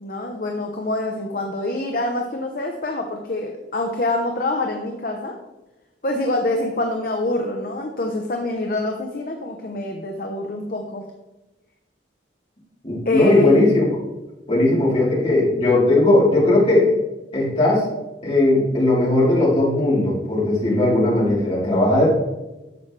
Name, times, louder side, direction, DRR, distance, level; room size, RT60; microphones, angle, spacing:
voice 1, 0.0-5.3 6.0-11.0 13.0-13.6, left 2 dB, 50° left, 2 dB, 0.8 m, -25 dB
voice 2, 12.8-13.8 14.5-16.9 17.3-17.9 18.2-22.1, left 2 dB, 30° left, -7 dB, 3.6 m, -17 dB
11.0 x 7.3 x 3.3 m, 1.0 s
head